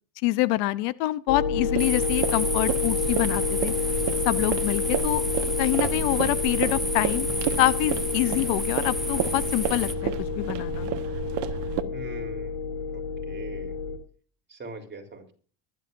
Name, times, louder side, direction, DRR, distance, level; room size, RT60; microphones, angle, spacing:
voice 1, 0.2-3.7 4.2-5.2 5.6-7.3 7.6-10.9, left 18 dB, 80° left, 17 dB, 0.9 m, -26 dB
sound 1, 1.3-14.0, left 5 dB, 55° left, 3.6 m, -29 dB
sound 2, 1.5-11.8, right 12 dB, 60° right, 1.5 m, -32 dB
sound 3, 1.8-9.9, equal, ahead, 0.5 m, -32 dB
voice 2, 11.9-12.6 12.9-13.7 14.5-15.2, right 2 dB, 20° right, 2 dB, 3.7 m, -42 dB
23.5 x 11.5 x 2.6 m, 0.42 s
supercardioid pair, 125°, 48 cm